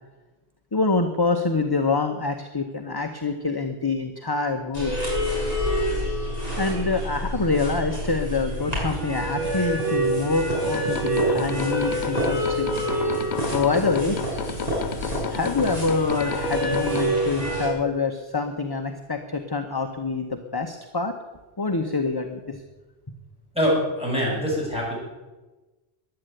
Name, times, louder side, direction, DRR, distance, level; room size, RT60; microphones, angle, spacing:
voice 1, 0.7-5.0 6.6-12.7 13.5-14.2 15.3-21.2 21.6-22.6, left 3 dB, 25° left, 5 dB, 1.0 m, -26 dB
sound 1, 4.7-17.7, right 1 dB, 35° right, 5.7 m, -27 dB
sound 2, 10.5-17.1, left 8 dB, 85° left, 1.1 m, -33 dB
voice 2, 23.5-25.0, equal, 5° right, -4 dB, 6.8 m, -24 dB
15.0 x 11.0 x 9.0 m, 1.2 s
omnidirectional pair, 1.1 m